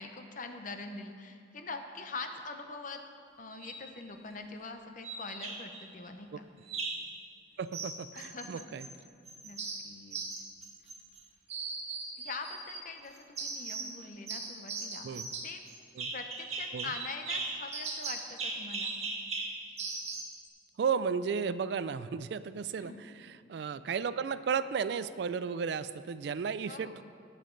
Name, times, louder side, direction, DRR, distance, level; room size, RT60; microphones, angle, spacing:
voice 1, 0.0-3.0 3.4-6.5 8.1-8.7 9.4-9.6 9.8-10.2 12.2-15.1 15.4-15.6 16.1-18.9 22.7-23.0 26.7-27.0, left 3 dB, 45° left, 6 dB, 0.8 m, -43 dB
sound 1, 3.5-3.9 5.0-5.8 6.7-7.1 7.7-8.9 9.3-11.2 11.5-12.8 13.4-14.0 14.3-20.4, right 3 dB, 35° right, 1.3 m, -38 dB
voice 2, 7.6-8.9 15.0-15.3 16.0-16.1 16.7-16.9 20.8-27.0, right 6 dB, 60° right, 15 dB, 0.3 m, -34 dB
18.5 x 7.0 x 3.9 m, 2.3 s
head